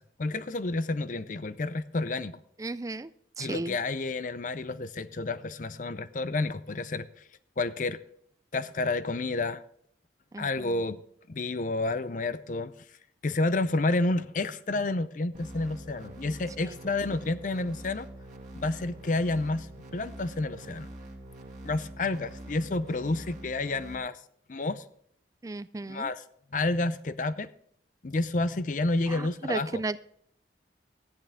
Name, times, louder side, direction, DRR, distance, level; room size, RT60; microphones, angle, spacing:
voice 1, 0.0-2.4 3.4-7.1 7.6-8.0 8.5-9.6 10.4-11.0 11.3-12.7 13.2-18.1 18.5-19.7 19.9-20.9 21.6-24.2 24.5-24.8 25.9-26.2 26.5-27.5 28.0-29.8, left 2 dB, 45° left, 14 dB, 0.5 m, -30 dB
voice 2, 2.6-3.1 3.4-3.8 10.3-10.8 16.6-16.8 25.4-26.1 29.1-30.0, right 2 dB, 20° right, 14 dB, 0.3 m, -35 dB
sound 1, 15.3-24.0, right 1 dB, 45° right, 2.0 m, -45 dB
13.5 x 10.0 x 3.6 m, 0.66 s
head